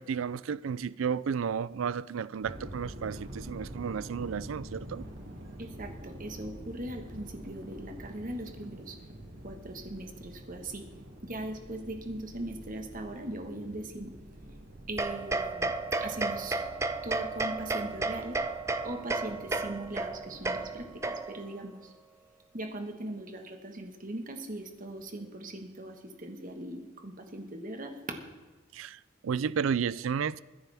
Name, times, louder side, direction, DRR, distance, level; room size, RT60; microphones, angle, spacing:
voice 1, 0.0-5.1 28.7-30.4, right 6 dB, 85° right, 0.4 m, -32 dB
sound 1, 2.4-21.0, right 1 dB, 65° right, 2.4 m, -47 dB
voice 2, 5.6-9.0 9.4-10.8 11.2-14.1 14.9-15.7 16.0-16.6 17.0-18.4 18.8-21.9 22.5-28.2, right 1 dB, 45° right, 1.4 m, -40 dB
sound 2, 15.0-21.5, right 3 dB, 15° right, 0.5 m, -33 dB
21.5 x 10.5 x 3.5 m
head